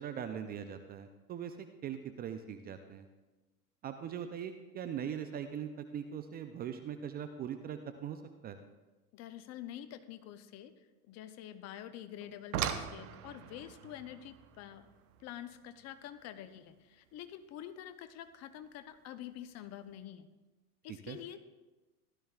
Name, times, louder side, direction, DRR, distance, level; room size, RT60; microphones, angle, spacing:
voice 1, 0.0-3.1 3.8-8.6 20.9-21.2, right 8 dB, 20° right, 8 dB, 0.5 m, -41 dB
voice 2, 9.1-14.9 15.2-20.3 20.8-21.5, left 11 dB, 35° left, 11 dB, 0.7 m, -47 dB
sound 1, 12.2-17.3 18.6-18.7 19.4-19.6 19.9-20.0, right 9 dB, 70° right, 1.0 m, -41 dB
16.0 x 12.5 x 2.4 m, 1.1 s
hypercardioid pair, 105°, 46 cm